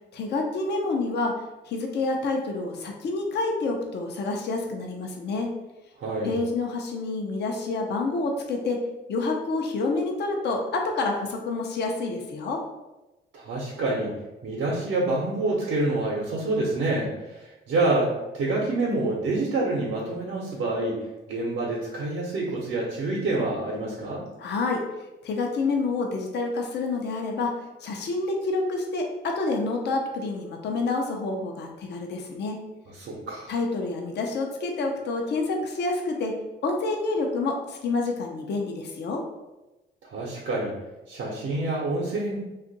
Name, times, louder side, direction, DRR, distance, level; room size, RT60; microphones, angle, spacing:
voice 1, 0.1-5.5 6.2-8.8 9.1-12.6 24.4-24.8 25.2-32.6 33.5-36.3 36.6-39.2, left 3 dB, 60° left, 1 dB, 0.6 m, -28 dB
voice 2, 6.0-6.4 13.3-14.2 14.4-24.2 32.9-33.5 40.0-40.7 41.1-42.4, right 2 dB, 70° right, -3 dB, 0.7 m, -27 dB
2.7 x 2.4 x 3.9 m, 1.0 s
cardioid pair, 90°, 20 cm